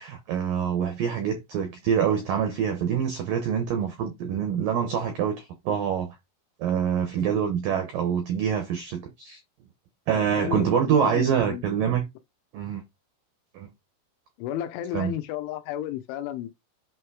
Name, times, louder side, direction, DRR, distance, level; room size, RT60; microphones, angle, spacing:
voice 1, 0.0-6.2 6.6-9.4 10.1-12.1 12.5-12.8 13.5-13.7 14.9-15.1, right 8 dB, 80° right, 1.9 m, -26 dB
voice 2, 10.1-11.9 14.4-16.5, left 11 dB, 80° left, 3.1 m, -33 dB
8.4 x 3.1 x 4.8 m
omnidirectional pair, 5.5 m